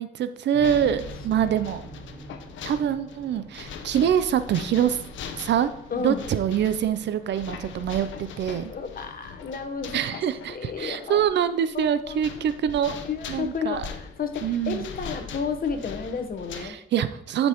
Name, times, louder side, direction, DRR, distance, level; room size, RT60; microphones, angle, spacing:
voice 1, 0.0-1.8 2.6-5.0 5.3-5.7 6.0-8.7 9.9-12.9 13.3-13.9 14.4-14.9 16.6-17.5, right 9 dB, 60° right, 13 dB, 0.6 m, -25 dB
sound 1, 0.5-16.3, right 3 dB, 30° right, 1.6 m, -49 dB
sound 2, 0.6-16.7, left 6 dB, 75° left, 0.9 m, -41 dB
voice 2, 5.9-6.2 8.7-10.2 10.5-11.2 11.6-12.2 13.0-16.8, left 5 dB, 45° left, 7 dB, 1.2 m, -32 dB
11.5 x 5.3 x 3.0 m, 0.79 s
cardioid pair, 90°, 20 cm